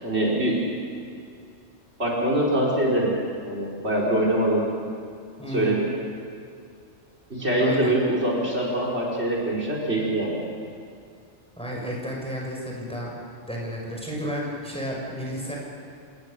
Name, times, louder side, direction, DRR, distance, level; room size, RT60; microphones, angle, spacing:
voice 1, 0.0-0.6 2.0-3.1 3.4-4.7 5.5-5.9 7.3-10.4, right 1 dB, 60° right, -2 dB, 4.6 m, -23 dB
voice 2, 5.4-5.8 7.6-7.9 11.6-13.1 13.4-15.6, equal, 5° left, -3 dB, 6.0 m, -32 dB
28.0 x 20.0 x 6.7 m, 2.3 s
omnidirectional pair, 1.2 m